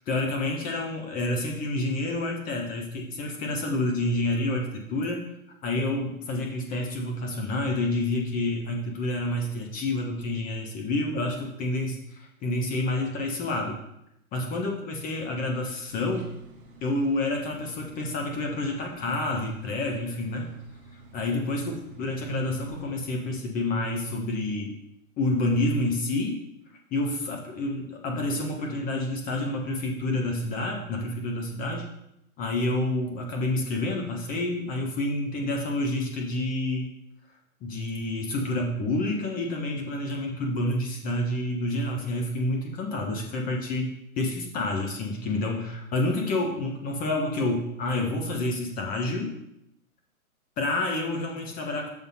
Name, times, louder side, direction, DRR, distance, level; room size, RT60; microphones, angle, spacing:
voice 1, 0.1-5.3 5.6-13.8 14.3-16.3 16.8-20.5 21.1-24.7 25.2-26.4 26.9-31.9 32.4-36.9 37.6-49.3 50.6-51.9, left 2 dB, 20° left, 2 dB, 0.9 m, -28 dB
sound 1, 15.9-22.9, right 2 dB, 15° right, 1.2 m, -47 dB
6.9 x 4.1 x 5.5 m, 0.81 s
hypercardioid pair, 130°, 44 cm